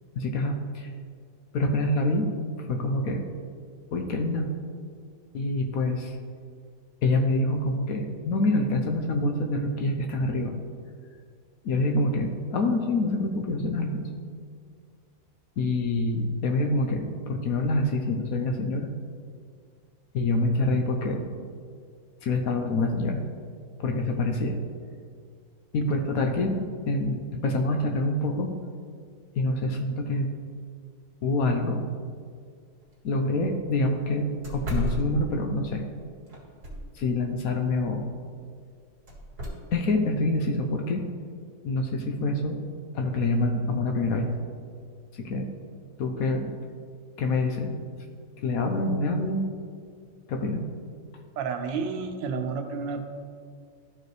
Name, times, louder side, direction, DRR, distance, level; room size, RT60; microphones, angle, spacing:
voice 1, 0.2-0.9 1.5-2.3 2.7-3.2 3.9-4.5 5.3-6.2 7.0-10.5 11.6-14.1 15.6-18.9 20.1-21.2 22.2-23.2 23.8-24.6 25.7-28.5 29.4-30.3 31.2-31.8 33.0-35.8 37.0-38.0 39.7-41.0 41.6-42.6 42.9-44.3 45.2-45.5 46.0-46.5 47.2-47.7 48.4-49.5 50.3-50.6, left 2 dB, 65° left, 3 dB, 1.0 m, -26 dB
sound 1, 32.8-32.9 33.3-33.4 33.8-33.9 34.4-35.7 36.3-37.1 39.1-39.5, right 1 dB, 60° right, 2.3 m, -33 dB
voice 2, 51.4-53.0, right 5 dB, 85° right, 5 dB, 1.5 m, -31 dB
13.0 x 4.7 x 3.2 m, 2.1 s
omnidirectional pair, 2.0 m